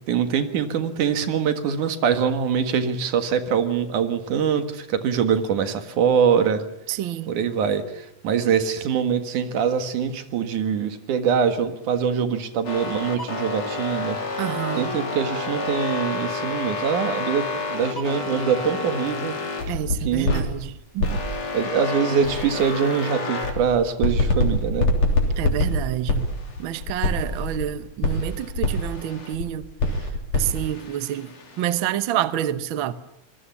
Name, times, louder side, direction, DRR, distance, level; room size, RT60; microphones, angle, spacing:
voice 1, 0.1-6.6 7.3-14.2 14.8-19.4 20.0-20.5 21.5-24.9, right 7 dB, 85° right, 3.3 m, -23 dB
voice 2, 6.9-7.3 14.4-14.9 19.7-21.2 25.4-26.3 26.6-29.6 30.3-32.9, right 12 dB, 60° right, 1.3 m, -28 dB
sound 1, 12.6-20.5 21.0-23.6 24.0-27.7 28.0-29.4 29.8-31.9, left 2 dB, 55° left, 4.6 m, -26 dB
25.5 x 21.5 x 7.2 m
omnidirectional pair, 3.4 m